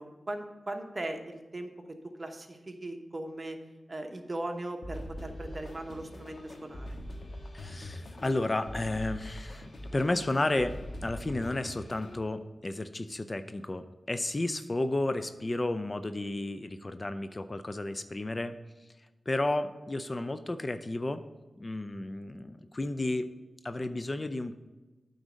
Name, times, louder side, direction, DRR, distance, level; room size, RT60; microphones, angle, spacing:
voice 1, 0.0-3.6 3.9-6.9, right 1 dB, 35° right, 4 dB, 1.1 m, -39 dB
sound 1, 4.8-12.2, left 1 dB, 65° left, 1.4 m, -43 dB
voice 2, 7.5-10.7 11.0-18.5 19.3-21.2 21.6-23.3 23.6-24.5, left 2 dB, 35° left, 11 dB, 0.4 m, -32 dB
8.8 x 3.9 x 6.3 m, 1.2 s
cardioid pair, 55°, 0 cm